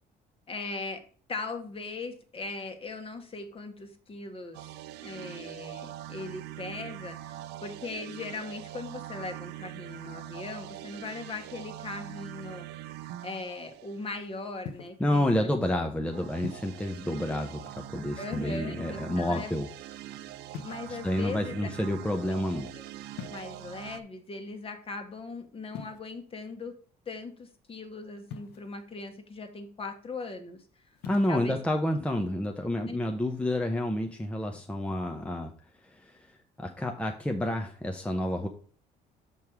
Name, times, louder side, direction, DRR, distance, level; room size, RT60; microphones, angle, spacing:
voice 1, 0.5-1.0 1.3-4.7 5.0-13.0 13.2-15.5 18.2-19.5 20.6-21.7 22.3-22.4 22.7-22.8 23.3-26.8 27.0-31.0 31.3-31.6 32.9-33.0, left 3 dB, 35° left, 6 dB, 1.5 m, -39 dB
sound 1, 4.5-14.6 16.0-24.0, right 13 dB, 85° right, 0.5 m, -43 dB
sound 2, 14.7-15.1 16.4-16.9 18.3-18.9 20.5-21.3 23.1-23.7 25.7-26.0 28.3-28.8 31.0-31.4, left 6 dB, 80° left, 1.1 m, -42 dB
voice 2, 15.0-19.7 21.0-22.7 31.1-35.5 35.8-36.3 36.6-38.5, left 1 dB, 5° left, 3 dB, 0.8 m, -29 dB
6.5 x 5.4 x 4.6 m, 0.43 s
cardioid pair, 110°, 17 cm